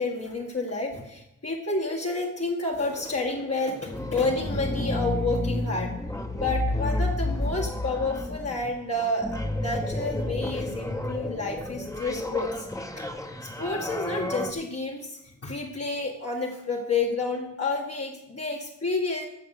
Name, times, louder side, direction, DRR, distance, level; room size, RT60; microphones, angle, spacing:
voice 1, 0.0-5.9 6.3-12.7 13.6-19.3, left 3 dB, 50° left, -2 dB, 1.9 m, -30 dB
sound 1, 2.8-14.5, left 1 dB, 10° left, 1.1 m, -31 dB
15.0 x 7.2 x 6.7 m, 0.87 s
wide cardioid pair, 100°, 31 cm